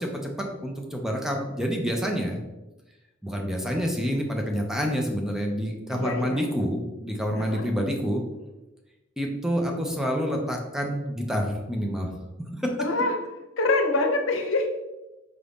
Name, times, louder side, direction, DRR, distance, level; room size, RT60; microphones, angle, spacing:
voice 1, 0.0-2.4 3.2-8.2 9.2-12.1 12.6-12.8, equal, 5° right, 1 dB, 0.5 m, -28 dB
voice 2, 5.9-6.5 7.4-7.7 12.8-13.2 13.6-14.7, left 2 dB, 90° left, 3 dB, 0.7 m, -25 dB
4.7 x 2.7 x 3.4 m, 1.0 s
head